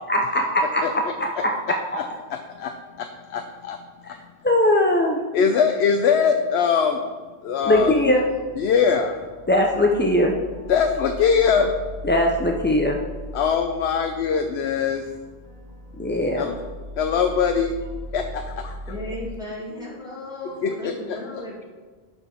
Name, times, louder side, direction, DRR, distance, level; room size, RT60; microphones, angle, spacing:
voice 1, 0.1-1.5 4.0-4.2 4.4-5.2 7.6-8.3 9.5-10.3 12.0-13.0 16.0-16.4, left 1 dB, 15° left, 1 dB, 0.4 m, -20 dB
voice 2, 2.3-3.8 4.0-4.2 5.3-7.0 7.4-8.2 8.6-9.2 10.7-11.7 13.3-15.0 16.4-16.6 17.0-17.7 18.1-18.7 20.6-21.2, left 6 dB, 80° left, 6 dB, 0.9 m, -22 dB
sound 1, 7.6-19.4, equal, 45° right, 1.1 m, -39 dB
voice 3, 18.9-21.6, left 1 dB, 5° right, -6 dB, 1.9 m, -35 dB
12.0 x 4.7 x 4.3 m, 1.4 s
omnidirectional pair, 1.1 m